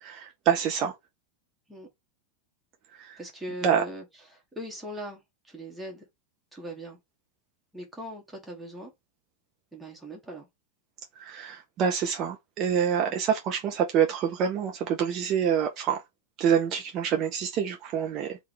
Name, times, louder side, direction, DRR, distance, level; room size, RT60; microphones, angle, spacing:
voice 1, 0.0-0.9 3.0-3.2 3.6-3.8 11.2-16.0 16.4-18.4, right 8 dB, 35° right, 0.6 m, -26 dB
voice 2, 3.2-5.2 5.5-6.1 6.5-7.0 7.7-8.9 9.7-10.5 13.0-13.2, equal, 5° right, 1.4 m, -40 dB
3.7 x 2.5 x 4.6 m
figure-of-eight pair, 90°, 0 cm